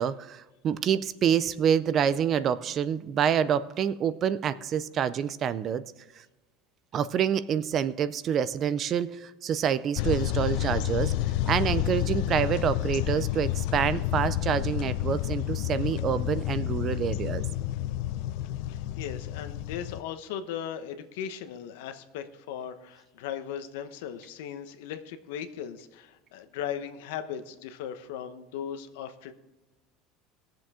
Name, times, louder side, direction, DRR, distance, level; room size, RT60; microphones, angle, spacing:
voice 1, 0.0-5.8 6.9-11.1 11.5-17.4, right 8 dB, 25° right, 16 dB, 0.4 m, -27 dB
sound 1, 10.0-20.0, left 14 dB, 55° left, 0.4 m, -29 dB
voice 2, 18.7-29.3, left 9 dB, 85° left, 9 dB, 1.0 m, -38 dB
18.5 x 7.4 x 3.7 m, 1.1 s
cardioid pair, 180°, 0 cm